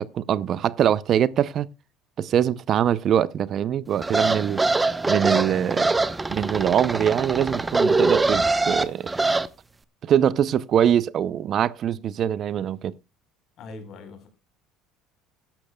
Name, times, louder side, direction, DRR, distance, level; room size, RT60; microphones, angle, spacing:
voice 1, 0.0-1.7 2.2-4.6 5.1-5.9 6.3-9.1 10.0-12.9, right 9 dB, 50° right, 0.5 m, -23 dB
sound 1, 4.0-9.5, right 3 dB, 15° right, 0.8 m, -23 dB
voice 2, 13.6-14.3, left 3 dB, 55° left, 4.2 m, -41 dB
15.5 x 11.5 x 2.2 m
supercardioid pair, 90°, 0 cm